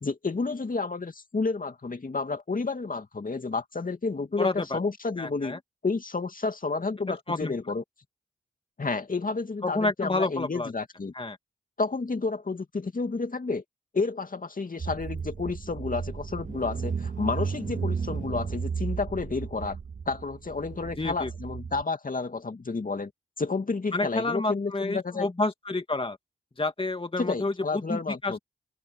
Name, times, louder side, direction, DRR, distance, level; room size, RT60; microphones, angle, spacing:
voice 1, 0.0-7.8 8.8-11.1 11.8-13.6 13.9-19.8 20.1-23.1 23.4-25.3 27.2-28.4, left 4 dB, 45° left, 2.5 m, -31 dB
voice 2, 4.4-4.8 5.2-5.6 7.1-7.5 9.6-10.7 11.1-11.4 21.0-21.3 23.9-26.2 26.6-28.4, left 2 dB, 30° left, 2.4 m, -29 dB
Car / Engine, 14.8-21.8, right 6 dB, 45° right, 0.8 m, -34 dB
open air
supercardioid pair, 40°, 19 cm